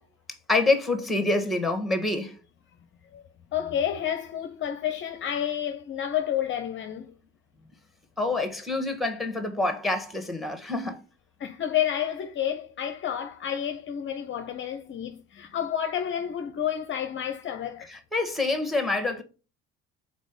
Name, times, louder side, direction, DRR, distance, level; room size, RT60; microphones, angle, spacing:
voice 1, 0.5-2.4 8.2-11.0 17.9-19.2, left 2 dB, ahead, 1.6 m, -26 dB
voice 2, 3.5-7.1 11.4-17.9, left 10 dB, 35° left, 0.7 m, -30 dB
5.2 x 4.1 x 5.2 m
hypercardioid pair, 65°, 34 cm